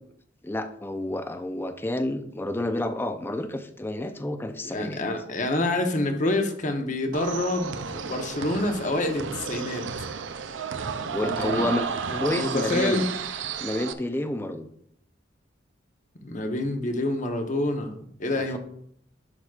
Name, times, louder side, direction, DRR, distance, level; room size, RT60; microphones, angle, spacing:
voice 1, 0.4-5.0 11.0-13.0 13.6-14.7 18.4-18.6, left 1 dB, 10° left, 8 dB, 0.5 m, -30 dB
voice 2, 4.6-9.9 11.2-11.7 12.1-13.0 16.2-18.6, left 2 dB, 45° left, 5 dB, 0.9 m, -27 dB
sound 1, 7.1-13.9, right 6 dB, 85° right, 0.5 m, -32 dB
11.0 x 5.9 x 2.4 m, 0.67 s
head